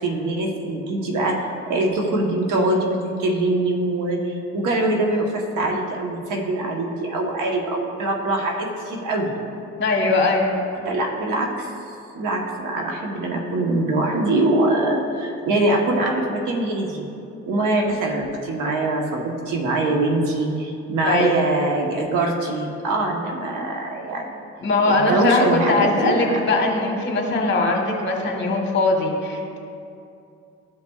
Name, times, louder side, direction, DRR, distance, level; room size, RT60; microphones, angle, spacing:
voice 1, 0.0-9.3 10.8-17.0 17.5-24.4 24.8-26.2 27.3-27.5, right 2 dB, 85° right, 1 dB, 1.1 m, -23 dB
voice 2, 9.8-10.7 21.0-21.4 24.6-29.6, left 2 dB, 40° left, 1 dB, 1.3 m, -21 dB
13.0 x 5.4 x 2.4 m, 2.6 s
cardioid pair, 90°, 30 cm